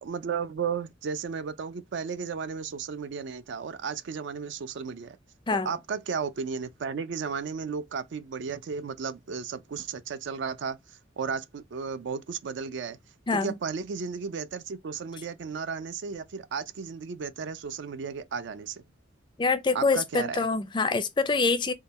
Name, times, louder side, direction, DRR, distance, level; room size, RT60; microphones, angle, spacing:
voice 1, 0.0-5.2 5.7-13.0 13.3-18.8 19.7-20.5, right 6 dB, 65° right, 0.4 m, -34 dB
voice 2, 19.4-21.7, left 4 dB, 25° left, 0.4 m, -25 dB
3.6 x 2.2 x 4.0 m
head